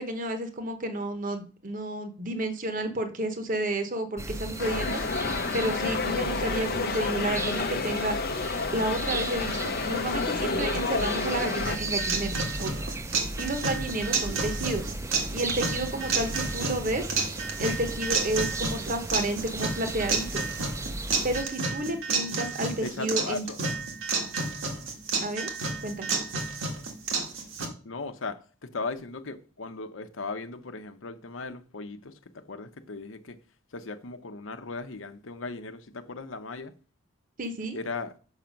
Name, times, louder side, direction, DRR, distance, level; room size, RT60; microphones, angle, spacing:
voice 1, 0.0-5.0 5.5-8.2 8.7-12.9 13.4-14.9 15.3-17.1 17.6-20.5 21.2-23.5 25.2-25.5 25.8-26.1 37.4-37.8, right 1 dB, 45° right, 0.9 m, -31 dB
sound 1, 4.2-21.4, right 2 dB, 15° right, 0.4 m, -36 dB
sound 2, 4.6-11.8, left 4 dB, 50° left, 0.6 m, -30 dB
sound 3, 11.7-27.7, right 4 dB, 90° right, 1.6 m, -31 dB
voice 2, 22.8-23.6 27.8-33.4 33.7-36.7 37.7-38.1, left 3 dB, 80° left, 0.8 m, -37 dB
6.5 x 5.9 x 5.2 m
head